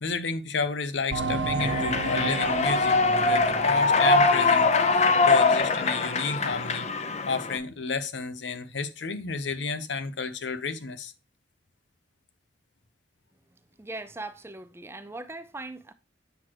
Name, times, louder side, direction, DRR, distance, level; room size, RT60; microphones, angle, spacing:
voice 1, 0.0-4.7 5.0-6.9 7.3-11.1, left 4 dB, 75° left, 0.8 m, -31 dB
sound 1, 1.1-5.4 5.7-5.8 6.4-6.5, right 3 dB, 90° right, 0.9 m, -33 dB
Human voice / Clapping / Cheering, 1.6-7.6, left 3 dB, 35° left, 0.7 m, -23 dB
voice 2, 13.8-15.9, right 2 dB, 15° right, 0.5 m, -39 dB
8.1 x 6.2 x 3.0 m
head